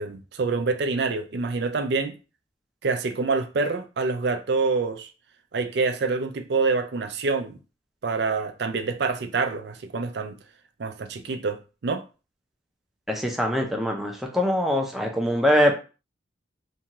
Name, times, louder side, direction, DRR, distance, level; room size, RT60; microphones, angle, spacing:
voice 1, 0.0-2.1 2.8-5.1 5.5-7.6 8.0-10.4 10.8-12.0, right 4 dB, 60° right, 0.4 m, -26 dB
voice 2, 13.1-15.7, equal, ahead, 0.5 m, -23 dB
2.6 x 2.3 x 2.9 m
head